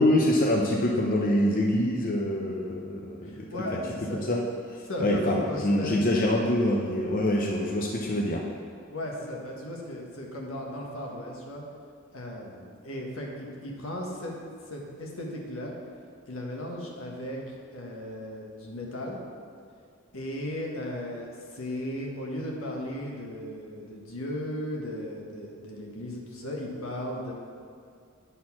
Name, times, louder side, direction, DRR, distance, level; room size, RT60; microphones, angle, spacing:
voice 1, 0.0-3.5 3.7-3.8 4.3-4.4 5.0-8.4, left 1 dB, 40° left, -1 dB, 0.6 m, -25 dB
voice 2, 3.2-4.2 4.8-6.1 8.9-11.6 12.1-14.4 14.7-15.7 16.3-17.4 17.7-19.2 20.1-27.3, left 1 dB, 80° left, -1 dB, 1.4 m, -36 dB
9.2 x 4.4 x 5.9 m, 2.3 s
head